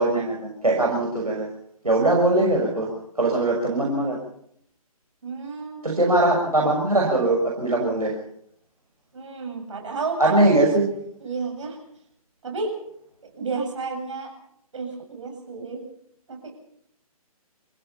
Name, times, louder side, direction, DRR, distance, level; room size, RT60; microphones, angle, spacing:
voice 1, 0.0-1.5 1.8-2.9 3.2-4.2 5.8-8.1 10.2-10.9, right 2 dB, 80° right, -1 dB, 6.1 m, -21 dB
voice 2, 5.2-6.1 9.1-10.3 11.2-11.8 12.4-12.7 13.3-14.3 14.7-15.9 16.3-16.5, right 4 dB, 55° right, 3 dB, 7.9 m, -31 dB
28.5 x 16.0 x 5.7 m, 0.69 s
figure-of-eight pair, 135°, 19 cm